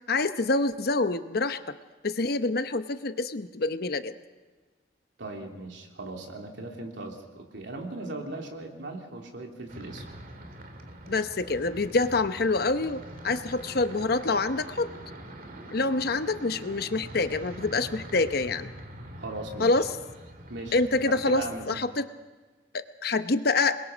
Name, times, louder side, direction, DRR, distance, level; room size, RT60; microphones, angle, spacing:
voice 1, 0.1-1.7 2.0-4.1 11.1-14.9 15.7-18.7 19.6-19.9 20.7-22.0 22.7-23.8, left 3 dB, 55° left, 10 dB, 0.9 m, -26 dB
voice 2, 5.2-10.0 19.2-19.8 20.5-20.8 21.0-21.8, right 2 dB, 75° right, 2 dB, 3.0 m, -38 dB
sound 1, 9.7-21.8, right 1 dB, 50° right, 2.1 m, -44 dB
27.5 x 21.5 x 5.1 m, 1.4 s
head